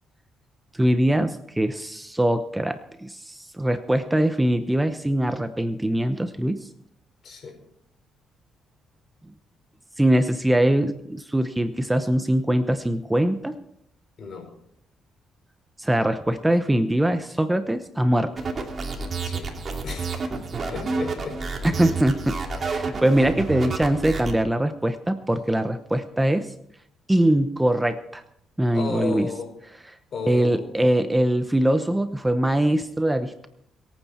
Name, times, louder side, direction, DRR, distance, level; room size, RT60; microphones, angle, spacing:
voice 1, 0.7-6.7 10.0-13.6 15.8-18.3 21.6-26.5 27.1-28.2 28.6-29.3 29.9-30.0 30.2-33.5, right 1 dB, 10° right, 10 dB, 0.9 m, -22 dB
voice 2, 7.2-7.6 14.2-14.5 19.2-19.5 19.8-20.2 20.7-21.4 28.7-29.5 30.1-30.7, left 5 dB, 55° left, 3 dB, 4.9 m, -34 dB
sound 1, 18.4-24.3, right 4 dB, 40° right, 2.8 m, -29 dB
22.5 x 9.3 x 4.4 m, 0.72 s
cardioid pair, 90°, 0 cm